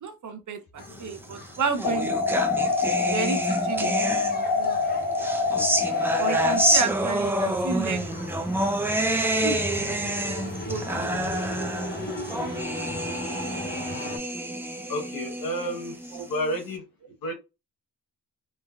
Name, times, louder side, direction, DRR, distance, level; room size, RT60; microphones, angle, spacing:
voice 1, 0.0-2.2 3.1-4.1 4.3-4.8 5.4-5.6 6.2-8.1 9.0-9.6 9.9-10.1 10.4-10.8 16.1-16.2, right 6 dB, 60° right, 0.6 m, -32 dB
sound 1, 0.7-14.2, left 2 dB, 30° left, 0.7 m, -38 dB
sound 2, 1.2-4.7 5.1-16.6, right 1 dB, 5° right, 0.4 m, -28 dB
sound 3, 1.8-6.8, left 4 dB, 70° left, 0.7 m, -25 dB
voice 2, 14.9-16.8 17.2-17.3, equal, 90° left, 1.1 m, -31 dB
3.3 x 2.1 x 2.3 m
wide cardioid pair, 125°, 34 cm